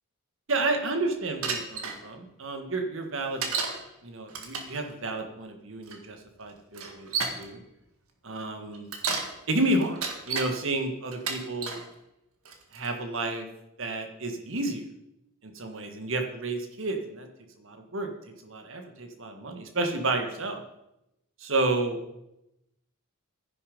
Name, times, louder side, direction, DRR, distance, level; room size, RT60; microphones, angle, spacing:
voice 1, 0.5-3.5 4.0-7.1 7.4-7.6 8.2-8.9 9.5-11.8 12.7-13.5 13.8-14.8 15.4-17.3 17.6-18.1 18.4-20.6 21.4-22.0, right 2 dB, 60° right, 4 dB, 1.7 m, -31 dB
Bicycle, 1.4-2.0 3.4-3.8 4.3-4.8 5.9-6.0 6.7-7.4 8.7-9.3 9.8-10.5 11.1-11.8 12.5-12.9, right 5 dB, 80° right, 1.8 m, -31 dB
11.5 x 10.5 x 5.3 m, 0.88 s
head